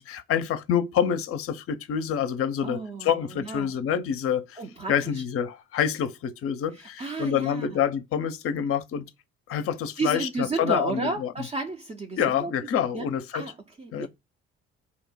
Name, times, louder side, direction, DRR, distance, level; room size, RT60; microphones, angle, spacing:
voice 1, 0.0-4.6 4.9-9.1 9.5-11.3 12.2-13.4 13.9-14.1, left 8 dB, 45° left, 0.5 m, -27 dB
voice 2, 2.6-3.7 4.6-5.2 6.7-7.8 10.0-13.1 13.3-14.1, right 3 dB, 20° right, 0.4 m, -33 dB
2.7 x 2.1 x 4.0 m
hypercardioid pair, 40°, 32 cm